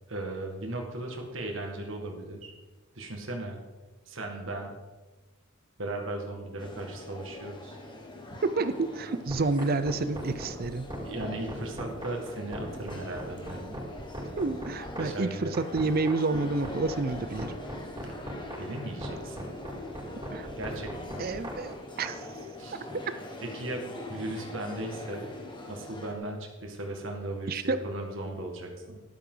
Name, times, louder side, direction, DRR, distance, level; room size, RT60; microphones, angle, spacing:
voice 1, 0.1-2.5 2.9-3.6 4.1-4.7 5.8-7.8 11.0-13.8 15.0-15.6 18.6-19.5 20.6-21.3 22.6-23.1 23.4-23.8 24.1-25.3 25.7-29.0, right 1 dB, 65° right, 2 dB, 2.0 m, -37 dB
sound 1, 6.6-26.1, left 2 dB, 25° left, 1.6 m, -43 dB
voice 2, 8.4-10.9 14.4-17.5 20.3-20.5 21.2-22.2 27.5-27.9, right 3 dB, 45° right, 12 dB, 0.6 m, -29 dB
sound 2, 9.3-22.1, right 1 dB, 25° right, 5.1 m, -39 dB
14.0 x 12.0 x 3.9 m, 1.2 s
head